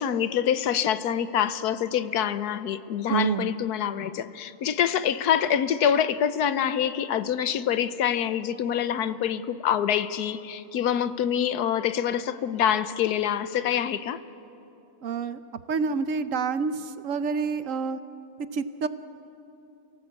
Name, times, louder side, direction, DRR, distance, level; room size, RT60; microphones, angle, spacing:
voice 1, 0.0-14.2, left 9 dB, 85° left, 13 dB, 1.3 m, -26 dB
voice 2, 3.1-3.5 15.0-15.4 15.7-18.0 18.5-18.9, right 5 dB, 60° right, 12 dB, 1.0 m, -27 dB
28.5 x 18.0 x 8.2 m, 2.8 s
omnidirectional pair, 1.7 m